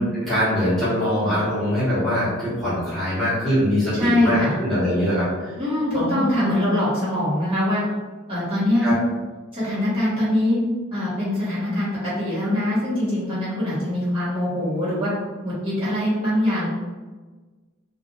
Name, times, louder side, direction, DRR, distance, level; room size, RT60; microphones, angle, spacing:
voice 1, 0.0-5.5 5.9-6.5 8.8-9.0, equal, ahead, -13 dB, 1.2 m, -23 dB
voice 2, 3.9-4.5 5.6-7.8 8.3-8.9 9.5-10.6 10.9-15.1 15.4-16.7, left 1 dB, 25° right, -11 dB, 1.4 m, -23 dB
3.5 x 2.5 x 2.5 m, 1.3 s
head